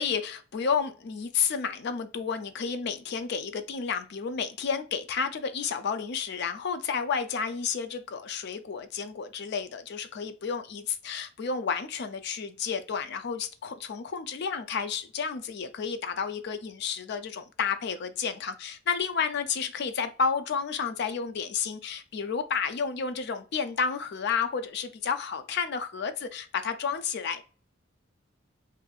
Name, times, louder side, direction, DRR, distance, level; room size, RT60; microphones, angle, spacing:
voice 1, 0.0-27.4, left 6 dB, 55° left, 0.4 m, -31 dB
4.2 x 2.6 x 2.3 m
head